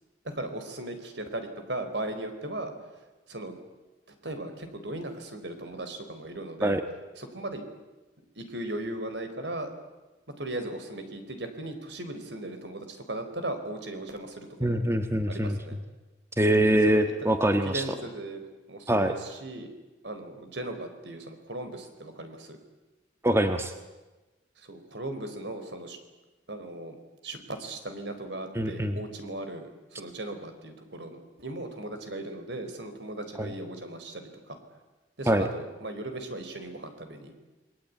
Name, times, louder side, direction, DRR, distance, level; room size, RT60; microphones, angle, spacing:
voice 1, 0.2-2.7 3.3-3.6 4.2-6.8 7.2-7.6 8.4-9.7 10.4-14.8 15.3-15.8 16.9-17.1 17.6-19.7 20.0-22.6 24.6-26.0 26.5-27.0 27.2-34.6 35.2-37.4, right 1 dB, 65° right, 7 dB, 4.4 m, -37 dB
voice 2, 14.6-15.6 16.4-17.8 18.9-19.1 23.2-23.7 28.5-29.0 33.4-33.5 35.3-35.5, right 1 dB, 15° right, 7 dB, 1.5 m, -24 dB
28.0 x 21.5 x 9.6 m, 1.1 s
head